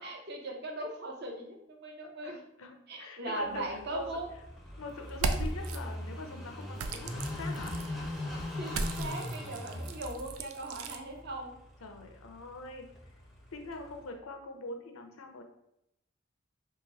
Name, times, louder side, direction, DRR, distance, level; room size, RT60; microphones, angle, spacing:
voice 1, 0.0-2.4 2.9-4.3 8.6-11.6, right 1 dB, 50° right, 1 dB, 0.6 m, -39 dB
voice 2, 2.0-4.1 4.8-7.7 11.8-12.9 13.5-15.4, left 2 dB, 80° left, 5 dB, 0.6 m, -43 dB
Car passing by / Idling, 3.4-14.1, left 1 dB, ahead, 0.5 m, -41 dB
sound 1, 5.1-5.8 6.8-7.9 8.7-11.0, right 3 dB, 85° right, 0.4 m, -36 dB
2.9 x 2.6 x 3.9 m, 0.80 s
head